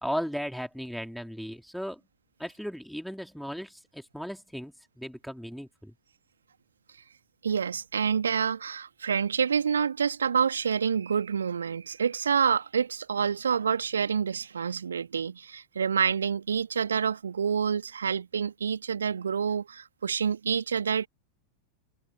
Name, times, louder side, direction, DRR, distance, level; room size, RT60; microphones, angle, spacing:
voice 1, 0.0-2.0 2.4-5.9, equal, ahead, 3.8 m, -36 dB
voice 2, 7.4-21.1, right 7 dB, 70° right, 2.2 m, -27 dB
figure-of-eight pair, 90°, 0 cm